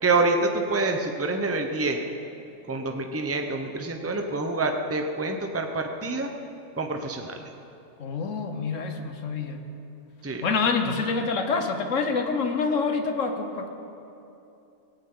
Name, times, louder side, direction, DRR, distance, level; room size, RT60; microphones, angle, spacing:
voice 1, 0.0-2.0 2.7-6.3 6.8-7.4 10.2-10.4, right 3 dB, 15° right, 4 dB, 0.8 m, -26 dB
voice 2, 8.0-9.6 10.4-13.7, left 4 dB, 85° left, 6 dB, 1.5 m, -26 dB
18.0 x 17.0 x 3.9 m, 2.8 s
omnidirectional pair, 1.3 m